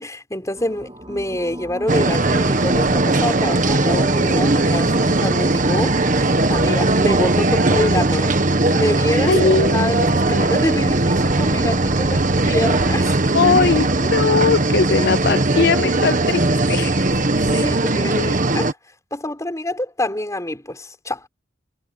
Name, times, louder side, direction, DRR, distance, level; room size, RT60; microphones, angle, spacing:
voice 1, 0.0-8.4 8.7-13.1 17.5-18.7 19.1-21.2, left 1 dB, 15° left, 5.0 m, -26 dB
sound 1, 0.6-8.4, equal, 25° right, 2.3 m, -35 dB
sound 2, 1.9-18.7, right 2 dB, 45° right, 1.4 m, -18 dB
voice 2, 9.3-9.9 13.3-17.0, left 5 dB, 60° left, 0.6 m, -19 dB
head